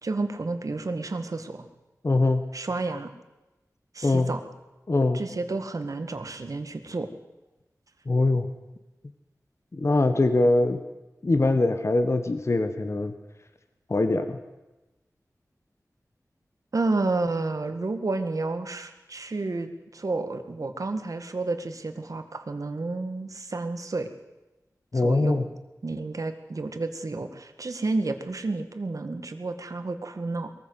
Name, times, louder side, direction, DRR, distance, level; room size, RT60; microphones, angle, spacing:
voice 1, 0.0-1.7 2.5-3.1 3.9-4.4 5.1-7.1 16.7-24.1 24.9-25.4 25.8-30.5, right 3 dB, 65° right, 8 dB, 1.9 m, -30 dB
voice 2, 2.0-2.4 4.0-4.3 4.9-5.2 8.0-8.5 9.7-10.8 11.2-13.1 13.9-14.4 24.9-25.4, left 2 dB, 50° left, 8 dB, 1.4 m, -22 dB
21.5 x 14.5 x 8.1 m, 1.1 s
wide cardioid pair, 65°, 6 cm